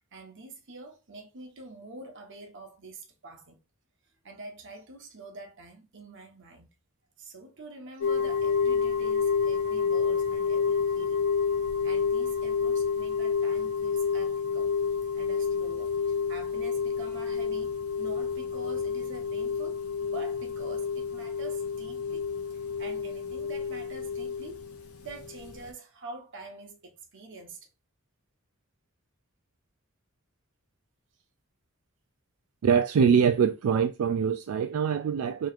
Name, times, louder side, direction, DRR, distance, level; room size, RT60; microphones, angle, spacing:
voice 1, 0.1-3.6 4.2-6.7 7.2-11.3 11.8-14.7 15.1-24.7 25.0-27.7, right 2 dB, 60° right, 1.1 m, -46 dB
sound 1, 8.0-25.7, left 6 dB, 80° left, 0.7 m, -29 dB
voice 2, 32.6-35.5, right 7 dB, 85° right, 0.4 m, -24 dB
4.7 x 3.1 x 2.4 m
head